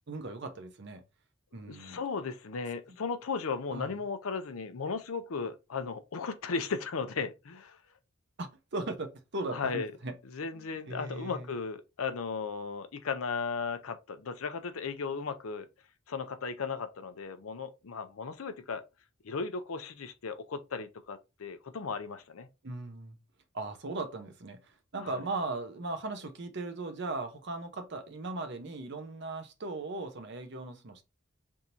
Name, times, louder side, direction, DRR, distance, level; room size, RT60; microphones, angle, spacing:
voice 1, 0.1-1.0 1.5-2.0 3.7-3.9 8.4-10.1 10.5-11.5 22.6-23.2 23.5-31.0, right 2 dB, 55° right, 0.8 m, -38 dB
voice 2, 1.7-7.8 9.5-9.9 10.3-15.7 16.1-18.8 19.2-22.5 25.0-25.2, left 5 dB, 90° left, 0.6 m, -36 dB
3.6 x 2.7 x 4.3 m
head